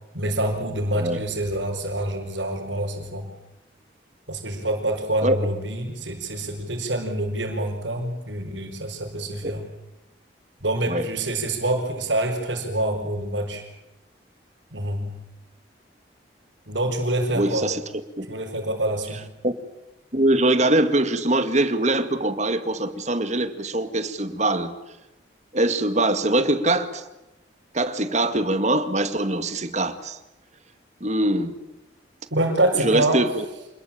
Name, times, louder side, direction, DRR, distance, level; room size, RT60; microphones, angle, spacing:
voice 1, 0.1-3.3 4.3-9.7 10.6-13.6 14.7-15.2 16.7-17.7 18.3-19.2 32.3-33.2, right 1 dB, 80° right, -4 dB, 5.1 m, -26 dB
voice 2, 17.3-17.8 18.2-18.3 19.4-19.5 20.1-24.7 25.5-27.0 27.7-30.2 31.0-31.6 32.8-33.3, right 1 dB, 40° right, 9 dB, 2.1 m, -22 dB
27.5 x 21.0 x 8.8 m, 0.95 s
head